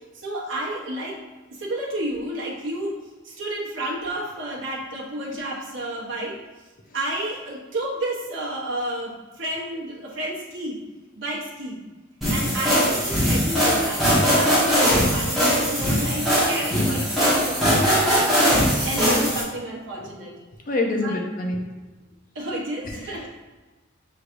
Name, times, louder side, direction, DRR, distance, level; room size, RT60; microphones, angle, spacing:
voice 1, 0.1-1.2 1.5-2.9 3.2-6.4 6.9-10.8 11.2-11.8 12.3-20.4 21.0-21.2 22.3-23.3, right 1 dB, 75° right, -4 dB, 1.0 m, -31 dB
voice 2, 12.2-12.6 20.7-21.6, left 2 dB, 45° left, 2 dB, 0.5 m, -26 dB
sound 1, 12.2-19.4, equal, ahead, 1.3 m, -20 dB
6.2 x 3.2 x 2.5 m, 1.2 s
head